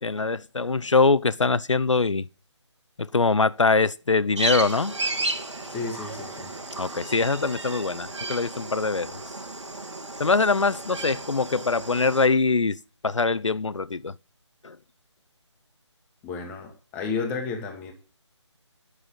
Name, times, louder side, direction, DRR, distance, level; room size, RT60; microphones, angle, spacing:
voice 1, 0.0-2.3 3.0-4.9 6.8-9.2 10.2-14.1 14.6-14.8, left 4 dB, 80° left, 0.6 m, -23 dB
sound 1, 4.4-12.3, right 2 dB, 75° right, 1.9 m, -33 dB
voice 2, 5.7-6.5 16.2-17.9, left 4 dB, 10° left, 1.2 m, -32 dB
9.7 x 6.3 x 8.6 m
figure-of-eight pair, 155°, 16 cm